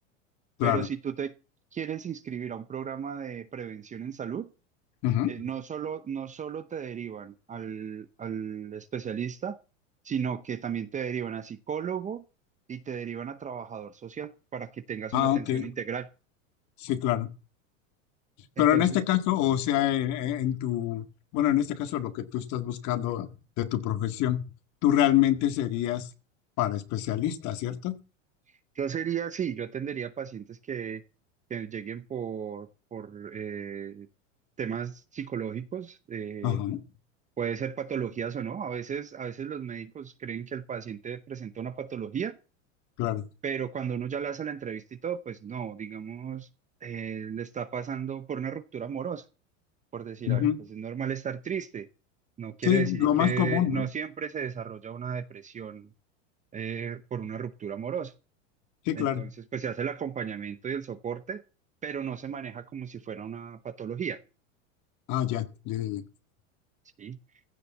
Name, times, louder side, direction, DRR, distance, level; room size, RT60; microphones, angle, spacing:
voice 1, 0.6-1.3 1.7-4.5 5.3-9.6 10.0-12.2 12.7-16.1 18.6-19.0 28.7-31.0 31.5-34.1 34.6-36.6 37.4-42.4 43.4-46.5 46.8-49.2 49.9-51.9 52.4-55.9 56.5-58.1 59.0-61.4 61.8-64.2 67.0-67.2, right 7 dB, 20° right, 0.7 m, -34 dB
voice 2, 15.1-15.7 16.8-17.3 18.6-21.0 21.3-23.3 23.6-24.4 24.8-26.1 26.6-28.0 36.4-36.8 43.0-43.2 50.3-50.6 52.7-53.9 58.9-59.2 65.1-66.0, left 12 dB, 50° left, 1.9 m, -26 dB
15.5 x 6.8 x 7.2 m
supercardioid pair, 120°, 38 cm